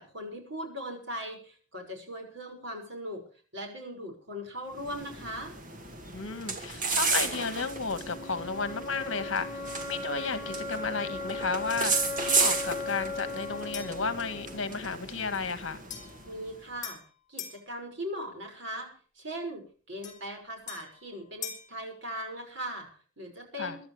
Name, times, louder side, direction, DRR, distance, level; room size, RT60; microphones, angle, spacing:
voice 1, 0.0-3.2 3.5-5.5 16.3-17.0 17.3-22.9 23.2-23.8, equal, 60° right, 3 dB, 6.0 m, -39 dB
sound 1, 4.7-16.5, right 4 dB, 40° right, 2.1 m, -34 dB
voice 2, 6.1-15.8 23.6-23.8, left 4 dB, 65° left, 10 dB, 1.7 m, -33 dB
sound 2, 7.1-15.1, left 3 dB, 10° right, 2.0 m, -38 dB
sound 3, 13.7-14.1 15.9-17.6 20.0-21.8, left 8 dB, 35° left, 4.1 m, -43 dB
24.5 x 12.0 x 3.4 m, 0.41 s
head